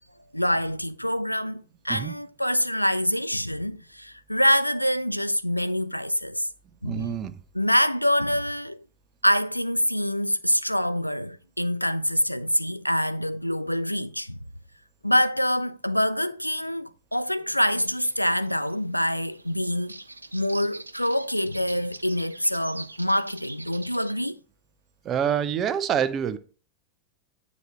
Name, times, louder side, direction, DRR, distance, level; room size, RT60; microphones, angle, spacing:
voice 1, 0.3-6.5 6.8-7.1 7.5-8.8 9.2-14.4 15.0-20.0 20.3-24.4, equal, 90° left, 0.4 m, -25 dB
voice 2, 6.8-7.4 25.0-26.4, right 8 dB, 30° right, 0.8 m, -26 dB
sound 1, 17.5-24.1, right 2 dB, 85° right, 0.4 m, -44 dB
9.5 x 4.2 x 4.3 m
figure-of-eight pair, 90°, 0 cm